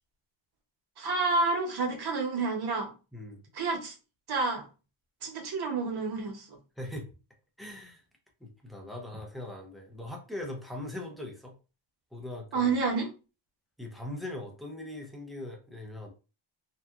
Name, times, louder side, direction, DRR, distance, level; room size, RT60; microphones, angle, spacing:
voice 1, 1.0-2.9 3.5-3.9 4.3-4.6 5.2-6.6 12.5-13.1, right 3 dB, 50° right, 0.8 m, -29 dB
voice 2, 6.8-7.1 7.6-8.0 8.4-11.5 12.1-12.7 13.8-16.1, left 1 dB, ahead, 0.5 m, -40 dB
2.8 x 2.2 x 2.3 m
wide cardioid pair, 145°, 48 cm